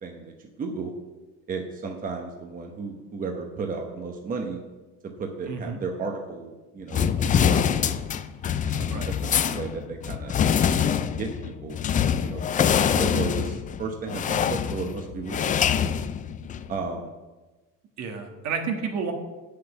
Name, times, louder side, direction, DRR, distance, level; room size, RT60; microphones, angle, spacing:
voice 1, 0.0-0.9 1.5-4.6 5.0-7.1 7.4-7.6 8.6-10.4 10.7-11.8 12.2-15.6 16.7-17.1, right 4 dB, 25° right, 3 dB, 1.0 m, -34 dB
voice 2, 5.5-5.8 8.9-9.1 18.0-19.1, right 5 dB, 60° right, 4 dB, 1.6 m, -30 dB
sound 1, 6.9-16.7, left 8 dB, 25° left, 0.4 m, -25 dB
7.7 x 6.7 x 8.1 m, 1.2 s
cardioid pair, 150°, 31 cm